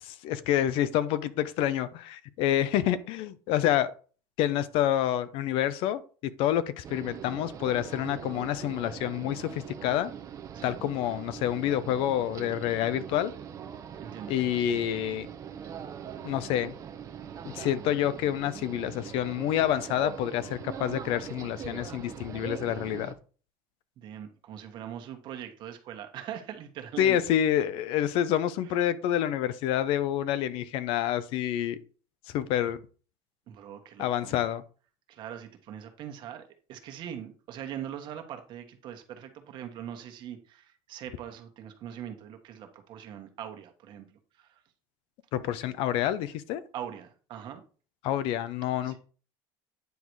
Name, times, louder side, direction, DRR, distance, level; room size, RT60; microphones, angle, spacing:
voice 1, 0.0-3.9 4.4-6.0 6.4-10.1 10.6-13.3 14.3-15.3 16.2-16.7 17.4-23.1 27.0-31.8 32.3-32.8 34.0-34.6 45.3-46.6 48.0-49.0, left 11 dB, 65° left, 14 dB, 0.7 m, -28 dB
sound 1, 6.8-23.1, right 8 dB, 35° right, 0.8 m, -42 dB
voice 2, 14.0-14.6 17.3-17.4 24.0-27.2 28.7-28.8 33.5-34.4 35.1-44.6 46.7-47.6 48.8-49.0, right 10 dB, 50° right, 5 dB, 1.4 m, -42 dB
9.4 x 4.0 x 4.7 m, 0.39 s
cardioid pair, 135°, 10 cm